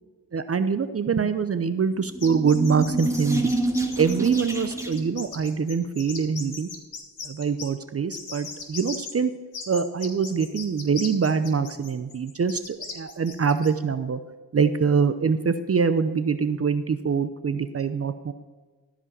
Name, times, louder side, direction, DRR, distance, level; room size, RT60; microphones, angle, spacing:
voice 1, 0.3-3.5 4.0-6.7 7.2-9.3 9.7-14.2 14.5-18.3, right 6 dB, 35° right, 11 dB, 0.7 m, -24 dB
sound 1, 2.0-5.2, right 2 dB, 5° right, 1.6 m, -28 dB
sound 2, 2.2-7.7 8.1-9.1 9.5-13.7, left 5 dB, 60° left, 2.5 m, -38 dB
14.0 x 5.1 x 6.7 m, 1.4 s
cardioid pair, 70°, 41 cm